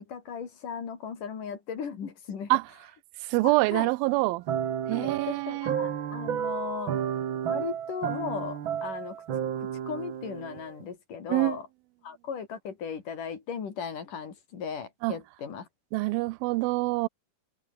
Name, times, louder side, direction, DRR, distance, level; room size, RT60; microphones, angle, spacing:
voice 1, 0.1-2.5 3.4-3.9 4.9-6.9 7.5-9.2 9.6-11.7 12.0-15.7, left 6 dB, 65° left, 4.8 m, -37 dB
voice 2, 3.3-4.4 4.9-5.7 11.3-11.6 15.0-15.2 15.9-17.1, right 22 dB, 85° right, 2.4 m, -25 dB
sound 1, 4.5-10.8, right 9 dB, 55° right, 1.4 m, -32 dB
omnidirectional pair, 4.1 m